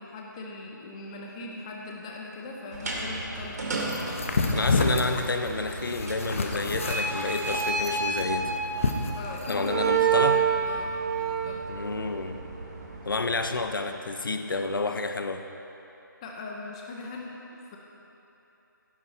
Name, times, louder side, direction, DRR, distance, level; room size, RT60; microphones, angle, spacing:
voice 1, 0.0-3.6 9.1-10.9 11.4-11.6 16.2-17.3 17.7-17.8, left 3 dB, 15° left, -1 dB, 0.9 m, -39 dB
sound 1, 2.7-13.6, right 5 dB, 55° right, 2.5 m, -30 dB
sound 2, 3.9-9.7, left 3 dB, 40° left, 1.0 m, -29 dB
voice 2, 4.5-8.6 9.5-10.4 11.7-12.4 13.0-15.5, left 3 dB, 85° left, 7 dB, 1.0 m, -30 dB
16.5 x 10.5 x 4.3 m, 3.0 s
hypercardioid pair, 170°, 11 cm